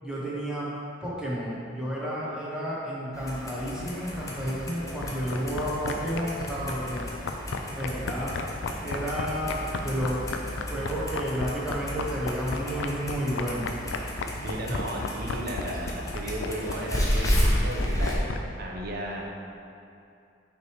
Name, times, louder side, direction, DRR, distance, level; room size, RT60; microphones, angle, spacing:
voice 1, 0.0-0.7 1.0-7.1 7.7-8.3 8.8-10.2 10.7-13.7 14.7-14.8, equal, 5° right, -8 dB, 1.2 m, -31 dB
Clock, 3.1-18.2, equal, 20° left, 0.7 m, -32 dB
sound 1, 5.0-18.4, left 5 dB, 75° left, 0.4 m, -32 dB
voice 2, 14.4-19.2, right 1 dB, 55° right, -1 dB, 0.8 m, -35 dB
6.3 x 3.3 x 4.7 m, 2.6 s
head